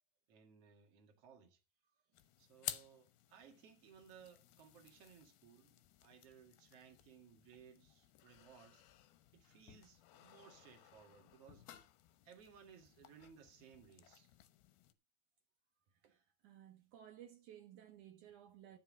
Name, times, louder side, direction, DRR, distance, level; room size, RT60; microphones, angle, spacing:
voice 1, 0.3-1.6 2.4-8.8 9.3-11.7 12.2-14.3, right 7 dB, 45° right, 2.1 m, -62 dB
sound 1, 2.1-14.9, left 13 dB, 75° left, 2.4 m, -55 dB
voice 2, 15.9-18.8, right 10 dB, 75° right, 1.8 m, -58 dB
13.5 x 4.6 x 7.3 m
omnidirectional pair, 5.5 m